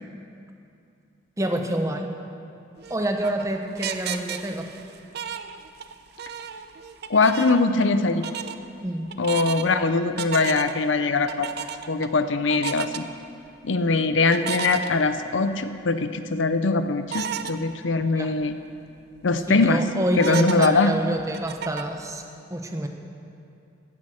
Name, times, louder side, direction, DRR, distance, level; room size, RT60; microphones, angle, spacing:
voice 1, 1.4-2.1 2.9-4.7 8.8-9.1 18.2-18.3 19.5-22.2 22.5-22.9, right 1 dB, 15° right, 4 dB, 1.0 m, -27 dB
sound 1, 2.8-5.9 6.2-7.9 8.2-8.6 9.1-9.7 10.2-10.8 11.3-12.1 12.5-13.0 14.3-15.5 16.0-16.1 17.1-17.5 18.0-18.1 18.4-18.5 19.0-19.4 20.2-22.0, right 8 dB, 55° right, 0.6 m, -33 dB
voice 2, 7.1-8.2 9.2-11.5 11.9-13.0 13.6-18.5 19.2-19.8 20.2-20.9, left 3 dB, 70° left, 10 dB, 0.7 m, -22 dB
16.0 x 9.6 x 6.5 m, 2.5 s
head